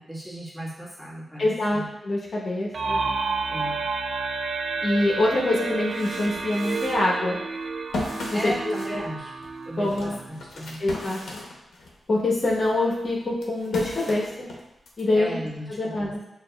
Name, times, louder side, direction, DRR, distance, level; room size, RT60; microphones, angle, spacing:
voice 1, 0.0-1.9 3.5-3.9 8.3-9.3 9.6-10.8 15.1-16.1, equal, 5° right, -8 dB, 1.5 m, -36 dB
voice 2, 1.4-3.0 4.8-7.4 8.3-8.5 8.9-9.0 9.8-10.2 10.8-11.4 12.1-14.5 15.0-15.3 15.7-16.2, left 2 dB, 55° left, -4 dB, 0.9 m, -25 dB
sound 1, 2.7-10.4, right 4 dB, 55° right, 0.3 m, -30 dB
sound 2, 5.6-12.0 12.4-15.0, left 1 dB, 85° left, 0.7 m, -37 dB
6.4 x 2.5 x 2.3 m, 0.89 s
cardioid pair, 80°, 0 cm